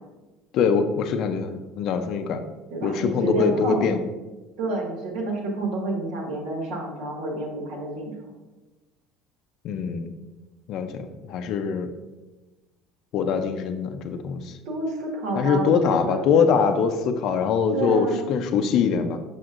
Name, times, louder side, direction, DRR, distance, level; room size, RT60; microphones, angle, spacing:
voice 1, 0.5-2.4 2.8-4.0 9.6-10.1 10.7-11.9 13.1-14.6 15.4-19.2, left 6 dB, 45° left, 7 dB, 0.5 m, -23 dB
voice 2, 2.7-3.9 4.6-8.3 14.6-16.3 17.7-18.4, right 2 dB, 65° right, -1 dB, 1.7 m, -29 dB
6.2 x 6.0 x 2.5 m, 1.1 s
cardioid pair, 165°, 0 cm